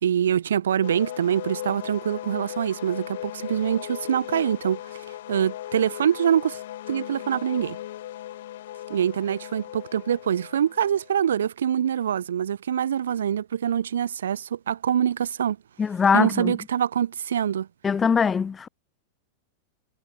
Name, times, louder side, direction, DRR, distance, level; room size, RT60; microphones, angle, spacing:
voice 1, 0.0-4.8 5.3-6.6 6.9-7.8 8.9-15.6 16.1-17.7, right 9 dB, 70° right, 2.6 m, -24 dB
sound 1, 0.8-11.2, left 13 dB, 60° left, 5.3 m, -37 dB
voice 2, 15.8-16.5 17.8-18.7, left 6 dB, 20° left, 3.3 m, -22 dB
figure-of-eight pair, 90°, 0 cm